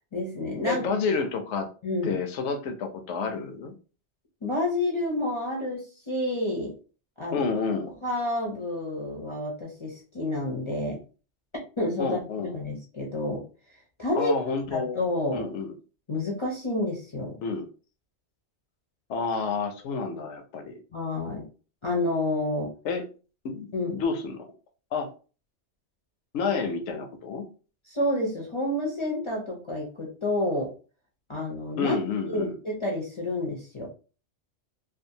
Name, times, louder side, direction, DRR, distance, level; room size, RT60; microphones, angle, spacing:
voice 1, 0.1-0.9 1.8-2.1 4.4-6.7 7.2-7.5 8.0-11.0 11.8-13.4 14.0-14.4 14.7-15.5 16.1-17.3 20.9-21.4 21.8-22.7 23.7-24.0 27.9-30.7 31.3-32.0 32.2-33.9, left 1 dB, 35° left, -2 dB, 0.5 m, -29 dB
voice 2, 0.6-1.7 2.0-3.7 7.3-7.9 12.0-12.6 14.1-15.0 15.3-15.7 17.4-17.7 19.1-20.8 22.8-23.0 23.4-23.7 23.9-24.5 24.9-25.1 26.3-27.5 31.8-32.6, left 5 dB, 75° left, 7 dB, 0.9 m, -29 dB
2.6 x 2.4 x 2.7 m, 0.36 s
omnidirectional pair, 1.2 m